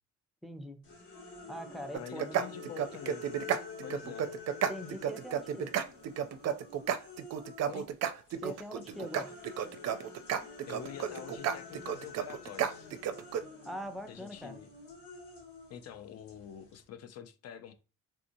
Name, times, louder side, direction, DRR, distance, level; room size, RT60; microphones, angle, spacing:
voice 1, 0.4-0.8 1.5-2.5 4.7-5.7 8.4-9.3 13.6-14.6, equal, ahead, 0.5 m, -42 dB
sound 1, 0.8-7.9 8.3-16.8, left 4 dB, 75° left, 1.9 m, -49 dB
voice 2, 1.9-3.2 3.8-4.3 7.6-7.9 10.7-12.9 14.1-14.7 15.7-17.7, left 9 dB, 55° left, 0.5 m, -46 dB
sound 2, 1.9-13.4, right 9 dB, 60° right, 0.4 m, -32 dB
3.5 x 2.7 x 2.6 m
cardioid pair, 90°, 30 cm